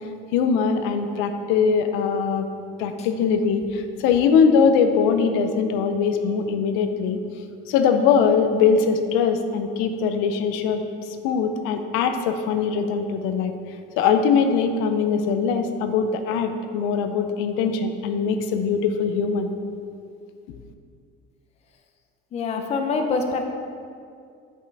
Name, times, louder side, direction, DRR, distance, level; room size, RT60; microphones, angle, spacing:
voice 1, 0.3-2.5 2.8-7.2 7.7-10.8 11.2-13.5 14.0-19.5, left 6 dB, 85° left, 7 dB, 0.6 m, -21 dB
voice 2, 22.3-23.4, left 4 dB, 30° left, 4 dB, 0.7 m, -25 dB
8.1 x 5.5 x 4.7 m, 2.3 s
cardioid pair, 165°, 20 cm